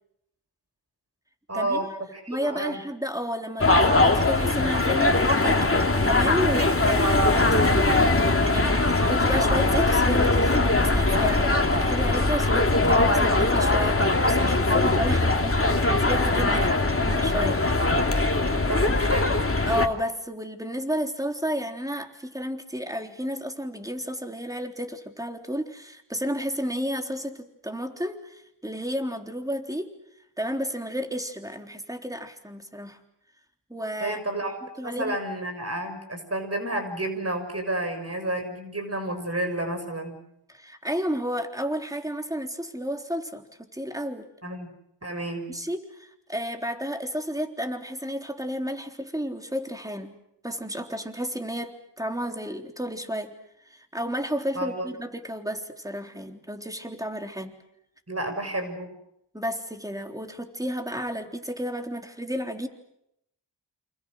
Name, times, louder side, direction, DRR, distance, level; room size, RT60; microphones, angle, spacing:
voice 1, 1.5-1.9 2.1-2.8 16.5-16.8 18.5-19.4 34.0-34.5 34.8-40.2 44.4-44.7 45.0-45.5 54.5-54.9 58.1-58.9, right 1 dB, 35° right, 6 dB, 6.6 m, -31 dB
voice 2, 2.3-17.7 19.6-29.9 30.4-33.0 33.7-34.2 34.8-35.2 40.5-43.5 43.7-44.3 45.5-50.2 50.4-53.3 53.7-57.5 59.3-62.7, equal, 10° right, 5 dB, 3.7 m, -32 dB
sound 1, 3.6-19.9, left 2 dB, 30° left, 2.8 m, -21 dB
28.5 x 27.0 x 6.5 m, 0.78 s
cardioid pair, 40°, 42 cm